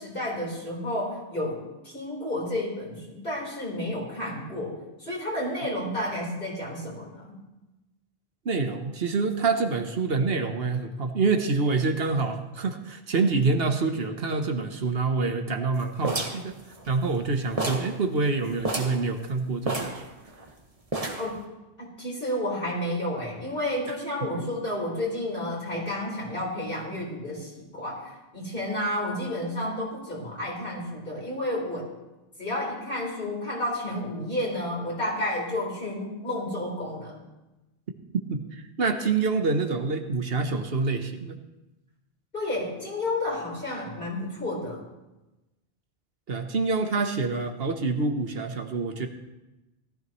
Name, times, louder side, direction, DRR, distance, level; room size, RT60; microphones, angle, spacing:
voice 1, 0.0-7.3 21.2-21.3 21.8-31.9 32.4-37.2 42.3-44.8, left 1 dB, 55° left, -4 dB, 4.5 m, -31 dB
voice 2, 8.4-16.5 16.9-20.1 38.3-41.4 46.3-49.1, right 4 dB, 65° right, 6 dB, 1.2 m, -26 dB
sound 1, 16.0-17.3 17.6-18.0 18.2-18.3 18.6-19.0 19.7-20.5 20.9-21.4, right 2 dB, 35° right, 1.5 m, -30 dB
18.0 x 13.5 x 3.1 m, 1.0 s
omnidirectional pair, 1.1 m